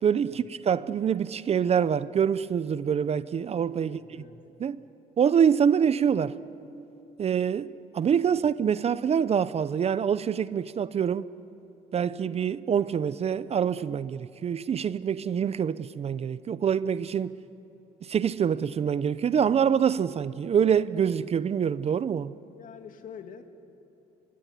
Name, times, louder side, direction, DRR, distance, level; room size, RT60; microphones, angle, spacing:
voice 1, 0.0-4.0 4.6-4.8 5.2-6.3 7.2-11.3 11.9-17.4 18.1-22.3, right 8 dB, 40° right, 0.6 m, -25 dB
voice 2, 3.8-4.4 8.3-8.5 22.5-23.4, left 7 dB, 55° left, 2.4 m, -46 dB
24.5 x 21.0 x 10.0 m
cardioid pair, 110°, 17 cm